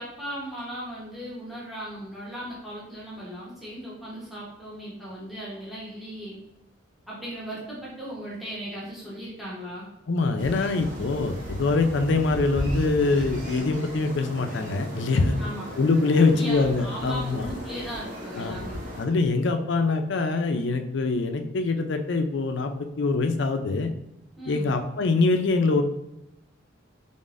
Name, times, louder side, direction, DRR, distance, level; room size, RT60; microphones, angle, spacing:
voice 1, 0.0-6.4 7.1-9.9 15.4-15.7 16.1-18.8 24.4-24.7, equal, ahead, -7 dB, 1.0 m, -37 dB
voice 2, 10.1-15.4 15.8-17.5 18.4-18.6 19.0-23.9 24.5-25.8, left 3 dB, 60° left, 6 dB, 0.4 m, -24 dB
sound 1, 10.4-19.1, equal, 40° right, 0.8 m, -36 dB
3.9 x 3.5 x 2.5 m, 0.88 s
head